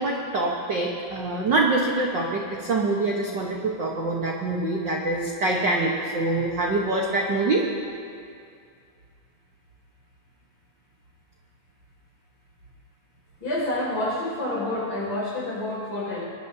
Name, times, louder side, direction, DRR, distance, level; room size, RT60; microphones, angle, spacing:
voice 1, 0.0-7.6, right 2 dB, 65° right, -1 dB, 1.1 m, -25 dB
voice 2, 13.4-16.3, left 1 dB, 35° left, -5 dB, 6.2 m, -28 dB
24.0 x 20.5 x 2.8 m, 2.3 s
omnidirectional pair, 3.8 m